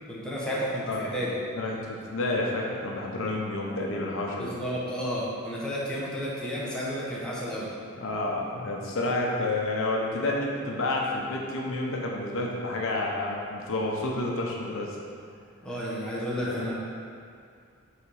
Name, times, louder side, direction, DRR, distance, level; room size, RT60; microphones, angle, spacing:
voice 1, 0.1-1.4 4.4-7.7 15.6-16.7, equal, 5° left, -7 dB, 0.9 m, -32 dB
voice 2, 1.5-4.5 8.0-14.9 16.1-16.7, left 2 dB, 65° left, -2 dB, 0.8 m, -30 dB
5.8 x 3.9 x 4.8 m, 2.3 s
head